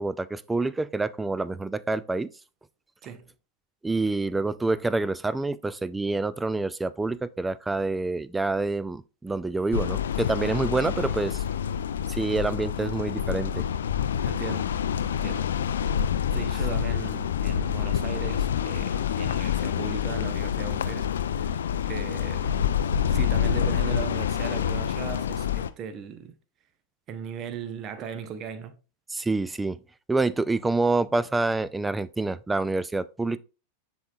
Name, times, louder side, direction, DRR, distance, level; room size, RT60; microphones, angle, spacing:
voice 1, 0.0-2.3 3.8-11.4 12.1-13.7 29.1-29.8 30.1-33.4, right 3 dB, 10° right, 0.3 m, -27 dB
voice 2, 3.0-3.3 14.2-14.8 15.0-15.5 16.3-21.6 21.9-26.4 27.1-28.8, right 7 dB, 30° right, 0.7 m, -38 dB
sound 1, 9.7-25.7, left 8 dB, 65° left, 0.4 m, -27 dB
10.5 x 3.8 x 2.4 m
figure-of-eight pair, 90°, 0 cm